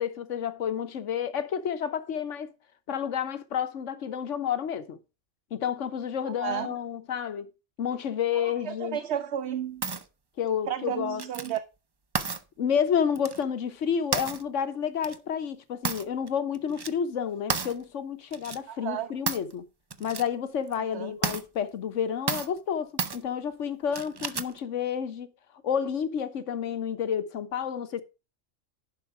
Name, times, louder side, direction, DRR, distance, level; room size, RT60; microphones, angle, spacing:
voice 1, 0.0-2.5 2.9-5.0 5.5-7.5 7.8-9.0 10.4-11.2 12.6-19.6 20.0-25.3 25.6-28.0, left 8 dB, 70° left, 1.3 m, -30 dB
voice 2, 6.2-6.7 8.4-9.8 10.7-11.6 18.7-19.1 20.9-21.2, right 10 dB, 60° right, 0.9 m, -33 dB
sound 1, 9.8-10.0 11.2-11.6 12.1-12.4 13.1-13.4 14.1-14.4 15.0-15.2 15.8-16.3 16.5-16.9 17.5-17.7 18.3-18.6 19.3-19.5 19.9-20.3 20.7-20.8 21.2-21.4 22.3-22.6 23.0-23.2 23.9-24.6, right 4 dB, 35° right, 0.4 m, -31 dB
11.0 x 6.2 x 4.7 m
omnidirectional pair, 1.3 m